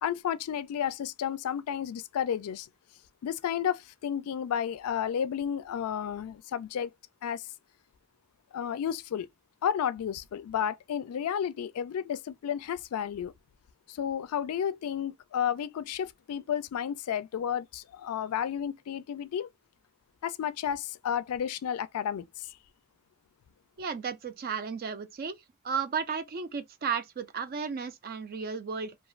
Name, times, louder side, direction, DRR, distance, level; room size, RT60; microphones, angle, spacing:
voice 1, 0.0-2.7 3.2-6.9 7.2-7.4 8.5-9.3 9.6-13.3 13.9-19.5 20.2-22.5, left 8 dB, 80° left, 0.3 m, -32 dB
voice 2, 23.8-25.4 25.6-29.0, right 6 dB, 45° right, 0.3 m, -34 dB
2.4 x 2.3 x 3.0 m
head